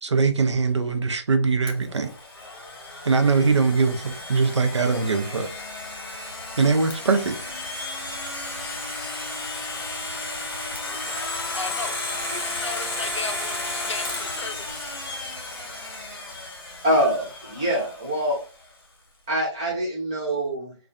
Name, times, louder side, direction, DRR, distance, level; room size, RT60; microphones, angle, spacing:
voice 1, 0.0-2.1 3.0-5.5 6.6-7.4, right 4 dB, 75° right, 0.5 m, -21 dB
Domestic sounds home sounds, 1.7-18.4, left 2 dB, 50° left, 0.9 m, -33 dB
voice 2, 10.8-12.0 12.3-14.8, left 4 dB, 75° left, 0.5 m, -35 dB
voice 3, 16.8-18.4 19.3-20.7, equal, 10° right, 0.4 m, -24 dB
2.4 x 2.3 x 2.4 m
figure-of-eight pair, 160°, 15 cm